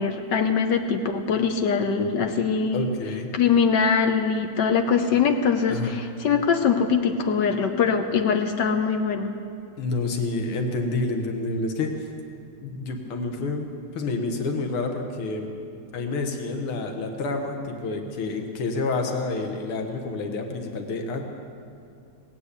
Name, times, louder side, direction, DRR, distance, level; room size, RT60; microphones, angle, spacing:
voice 1, 0.0-2.9 3.3-9.3, left 6 dB, 65° left, 5 dB, 1.3 m, -22 dB
voice 2, 2.7-3.3 5.7-5.9 9.8-11.9 12.6-15.5 15.9-21.2, left 3 dB, 80° left, 4 dB, 2.1 m, -28 dB
18.5 x 8.6 x 8.2 m, 2.5 s
omnidirectional pair, 2.4 m